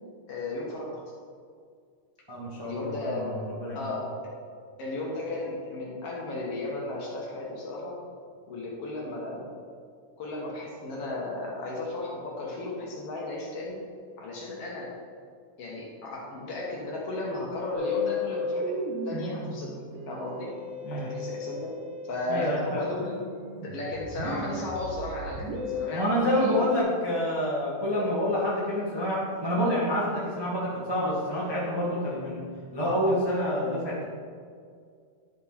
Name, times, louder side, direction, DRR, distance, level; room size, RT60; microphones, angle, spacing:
voice 1, 0.3-1.0 2.6-3.3 3.7-4.1 4.8-8.0 8.5-9.4 10.2-13.8 14.2-14.9 15.6-18.8 19.0-19.7 20.1-20.5 20.9-21.7 22.0-23.2 23.6-26.7, left 2 dB, 55° left, -3 dB, 1.9 m, -34 dB
voice 2, 2.3-3.8 20.8-21.1 22.3-22.8 25.9-32.5 32.7-34.0, equal, 35° right, -7 dB, 0.3 m, -28 dB
Musical instrument, 17.7-26.8, left 2 dB, 85° right, 2.9 m, -35 dB
12.5 x 4.6 x 4.2 m, 2.1 s
omnidirectional pair, 3.7 m